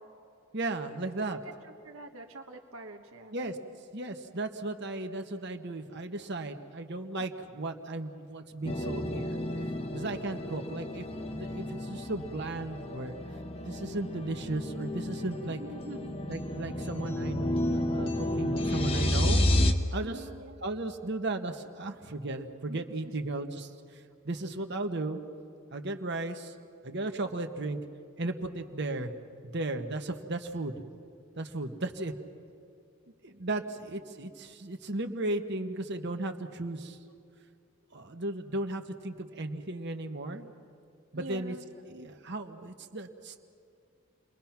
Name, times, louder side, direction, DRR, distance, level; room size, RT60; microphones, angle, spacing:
voice 1, 0.5-1.4 3.3-3.6 3.9-9.4 9.9-11.1 11.3-13.2 13.6-15.6 16.3-19.4 19.9-20.3 20.6-25.2 25.7-26.5 26.8-27.8 28.2-29.1 29.4-30.7 31.4-32.1 33.2-37.0 37.9-40.5 41.1-41.5 41.9-43.4, right 2 dB, 50° right, 5 dB, 1.4 m, -35 dB
voice 2, 1.3-3.4 15.5-16.1 20.0-20.6 22.7-23.2 41.1-42.1, right 1 dB, 70° right, 2 dB, 1.3 m, -46 dB
sound 1, 8.6-19.7, left 1 dB, 25° left, 1.1 m, -31 dB
29.5 x 22.0 x 6.0 m, 2.5 s
head